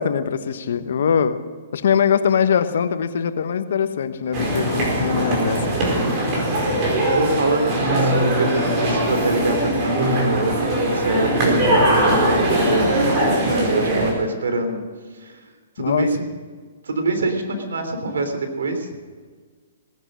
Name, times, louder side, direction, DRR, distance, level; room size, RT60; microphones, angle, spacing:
voice 1, 0.0-1.4 1.7-5.6 15.8-16.1, left 7 dB, 70° left, 10 dB, 1.2 m, -22 dB
sound 1, 4.3-14.1, right 1 dB, 30° right, 4.7 m, -20 dB
voice 2, 7.1-14.8 15.1-15.4 15.8-16.3 16.8-18.9, right 2 dB, 90° right, 6 dB, 3.2 m, -24 dB
18.5 x 11.0 x 6.3 m, 1.5 s
hypercardioid pair, 155°, 0 cm